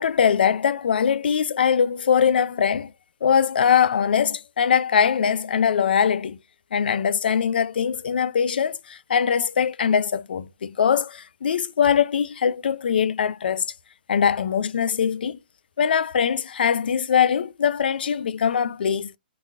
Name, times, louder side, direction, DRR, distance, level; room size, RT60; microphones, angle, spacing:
voice 1, 0.0-2.9 3.2-6.4 6.7-13.6 14.1-15.4 15.8-19.1, left 7 dB, 80° left, 0.4 m, -22 dB
3.9 x 2.4 x 2.3 m
hypercardioid pair, 145°, 5 cm